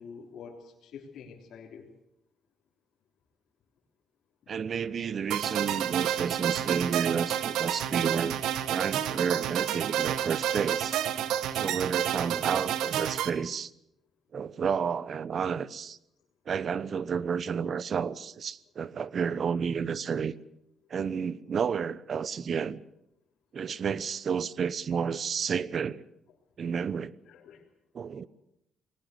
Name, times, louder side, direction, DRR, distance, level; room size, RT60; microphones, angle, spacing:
voice 1, 0.0-1.9 11.4-11.8 27.3-27.6 28.1-28.3, left 6 dB, 75° left, 3.6 m, -47 dB
voice 2, 4.5-8.4 8.7-11.0 11.5-13.7 14.3-16.0 16.5-20.3 20.9-22.8 23.5-26.0 26.6-27.1 27.9-28.3, right 6 dB, 50° right, 0.9 m, -31 dB
sound 1, 5.3-13.3, right 10 dB, 85° right, 1.3 m, -30 dB
21.0 x 19.0 x 7.9 m
cardioid pair, 90°, 0 cm